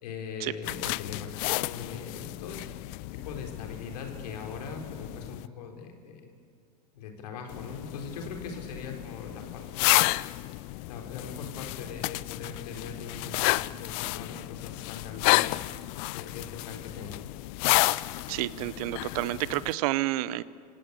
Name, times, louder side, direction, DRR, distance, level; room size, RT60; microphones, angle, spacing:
voice 1, 0.0-2.7 3.1-6.3 6.9-10.0 10.9-15.7 16.1-17.2, left 5 dB, 75° left, 3 dB, 3.8 m, -41 dB
sound 1, 0.6-5.5 7.5-19.7, left 22 dB, 55° left, 0.5 m, -31 dB
voice 2, 18.3-20.4, right 17 dB, 65° right, 18 dB, 0.9 m, -30 dB
26.5 x 17.0 x 8.2 m, 2.2 s
hypercardioid pair, 95°, 21 cm